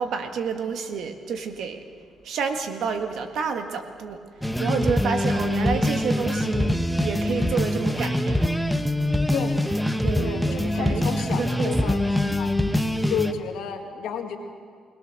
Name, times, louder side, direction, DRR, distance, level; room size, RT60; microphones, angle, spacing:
voice 1, 0.0-1.8 2.2-4.2 4.6-8.6 10.0-12.0, right 6 dB, 70° right, 6 dB, 1.7 m, -29 dB
sound 1, 4.4-13.3, left 1 dB, ahead, 1.0 m, -24 dB
voice 2, 10.2-12.6 13.1-14.4, left 7 dB, 85° left, 3 dB, 2.0 m, -32 dB
21.0 x 18.5 x 6.7 m, 2.1 s
cardioid pair, 90°, 0 cm